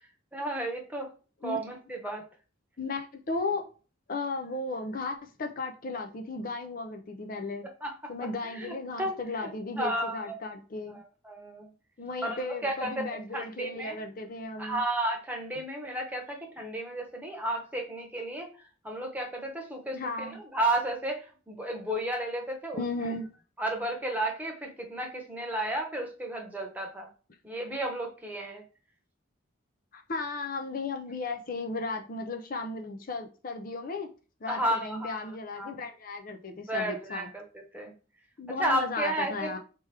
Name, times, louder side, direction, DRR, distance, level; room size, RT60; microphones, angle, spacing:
voice 1, 0.3-1.1 1.4-2.2 7.8-7.9 8.4-9.5 9.8-10.4 10.8-11.7 12.2-12.9 13.3-14.0 14.6-22.8 23.6-27.1 27.4-28.6 34.5-35.7 36.7-37.9 38.6-39.6, right 1 dB, 10° right, 1.0 m, -33 dB
voice 2, 2.8-3.6 4.1-7.7 8.1-11.0 12.0-14.8 19.9-20.4 22.7-23.3 29.9-34.1 34.4-37.3 38.4-39.6, left 3 dB, 45° left, 0.6 m, -35 dB
4.7 x 3.0 x 3.3 m
head